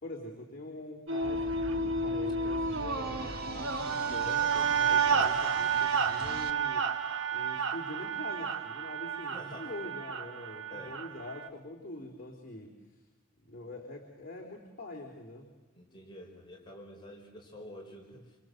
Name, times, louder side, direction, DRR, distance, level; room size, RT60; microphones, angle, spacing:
voice 1, 0.0-7.1 7.3-13.0 13.4-15.5, left 2 dB, 45° left, -1 dB, 3.6 m, -44 dB
sound 1, 1.1-11.5, right 5 dB, 70° right, 1.7 m, -31 dB
sound 2, 1.2-6.5, right 2 dB, 50° right, 1.7 m, -44 dB
voice 2, 9.3-9.7 10.7-11.0 15.7-18.4, left 1 dB, 20° left, 0 dB, 4.6 m, -48 dB
27.5 x 27.0 x 7.9 m, 1.2 s
head